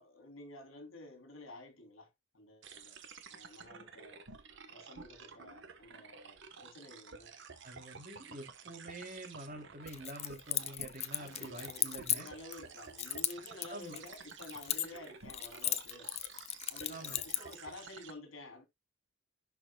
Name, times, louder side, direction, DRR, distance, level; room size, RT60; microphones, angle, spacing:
voice 1, 0.0-2.1 2.3-3.0 3.3-4.2 4.7-7.4 11.1-16.1 16.7-18.6, left 2 dB, 75° left, 3.4 m, -51 dB
sound 1, 2.6-18.1, right 5 dB, 60° right, 1.3 m, -52 dB
voice 2, 7.6-12.3 13.7-14.0 16.9-17.2, right 1 dB, 45° right, 3.1 m, -47 dB
Keys jangling, 9.9-12.6 13.0-15.0 15.3-17.5, left 12 dB, 30° left, 0.6 m, -36 dB
11.0 x 5.8 x 2.3 m
head